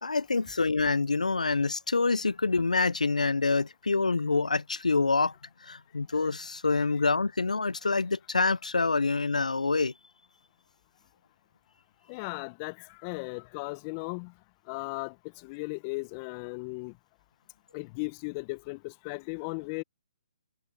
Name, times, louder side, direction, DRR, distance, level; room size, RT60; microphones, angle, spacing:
voice 1, 0.0-5.3 5.6-9.9, left 3 dB, 85° left, 0.6 m, -26 dB
voice 2, 12.1-14.3 14.7-16.9 17.7-19.8, left 29 dB, 30° left, 1.2 m, -36 dB
figure-of-eight pair, 135°, 4 cm